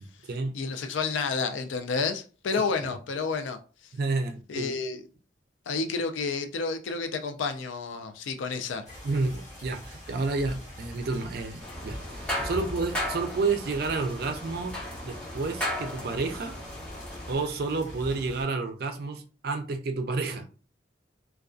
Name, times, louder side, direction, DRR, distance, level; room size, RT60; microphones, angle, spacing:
voice 1, 0.0-0.6 2.8-2.9 3.9-4.7 9.0-14.7 15.0-16.6 17.3-20.5, right 3 dB, 50° right, 0.4 m, -30 dB
voice 2, 0.5-3.6 4.5-5.0 5.7-8.9, left 4 dB, 85° left, 0.4 m, -30 dB
sound 1, 8.9-18.4, left 1 dB, 40° left, 1.2 m, -43 dB
sound 2, 11.6-17.3, left 1 dB, 5° left, 0.7 m, -36 dB
2.4 x 2.2 x 2.3 m
head